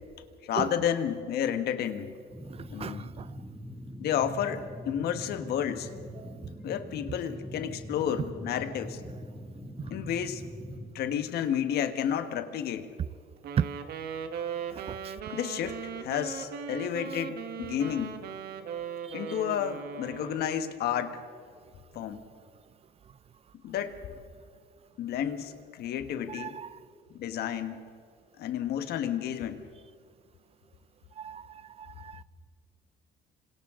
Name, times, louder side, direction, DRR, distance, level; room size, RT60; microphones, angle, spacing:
voice 1, 0.4-2.1 2.7-3.1 4.0-5.9 6.6-9.0 9.9-10.4 10.9-12.9 15.3-18.2 19.1-21.2 21.9-22.2 23.6-23.9 25.0-26.6 27.2-27.8 28.4-29.6, left 9 dB, 70° left, 1.4 m, -31 dB
sound 1, 2.3-10.9, equal, 5° right, 2.6 m, -42 dB
voice 2, 2.8-3.3 6.2-6.3 13.6-13.7 14.7-15.1 26.3-26.7 31.2-31.5 31.8-32.2, right 8 dB, 35° right, 0.4 m, -34 dB
Wind instrument woodwind instrument, 13.4-20.9, right 7 dB, 65° right, 1.3 m, -38 dB
27.0 x 26.5 x 3.8 m
cardioid pair, 110°, 17 cm